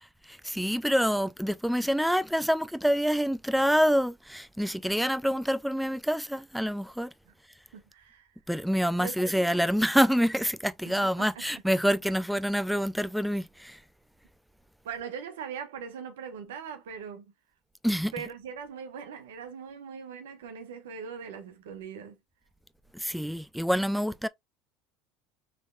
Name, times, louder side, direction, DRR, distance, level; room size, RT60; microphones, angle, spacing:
voice 1, 0.2-7.1 8.5-13.8 17.8-18.1 22.9-24.3, equal, ahead, 0.4 m, -27 dB
voice 2, 7.7-8.3 9.0-9.4 11.0-11.4 14.8-17.3 18.1-22.2, right 7 dB, 85° right, 1.2 m, -40 dB
5.5 x 3.4 x 2.4 m
hypercardioid pair, 90°, 0 cm